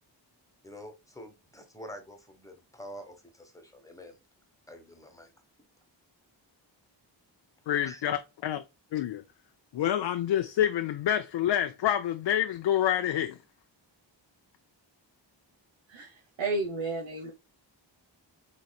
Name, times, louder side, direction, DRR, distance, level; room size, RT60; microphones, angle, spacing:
voice 1, 0.6-4.2 4.7-5.3 7.8-8.0, equal, 5° left, 1.2 m, -47 dB
voice 2, 7.7-8.6 8.9-9.2 9.7-13.4, left 11 dB, 65° left, 0.5 m, -27 dB
voice 3, 15.9-17.3, right 3 dB, 80° right, 1.1 m, -32 dB
4.2 x 3.1 x 2.3 m
cardioid pair, 60°, 45 cm